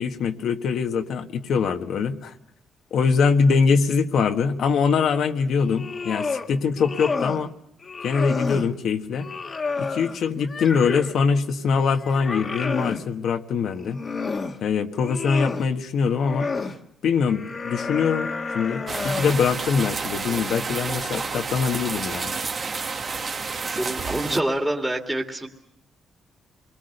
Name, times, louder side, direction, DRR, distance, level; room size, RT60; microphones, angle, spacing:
voice 1, 0.0-2.3 2.9-7.5 8.0-9.3 9.8-14.0 14.6-16.5 17.0-18.3 18.5-22.3, left 5 dB, 70° left, 6 dB, 1.4 m, -23 dB
sound 1, 5.6-6.5 6.8-7.5 7.8-8.7 9.2-11.2 11.6-13.0 13.7-14.6 14.9-15.7 16.2-16.8 17.3-19.4, left 4 dB, 40° left, 1.5 m, -30 dB
sound 2, 18.9-24.4, right 4 dB, 45° right, 1.5 m, -30 dB
voice 2, 23.7-25.5, right 1 dB, 5° right, 0 dB, 2.1 m, -26 dB
27.5 x 21.0 x 6.7 m, 0.74 s
cardioid pair, 90°, 0 cm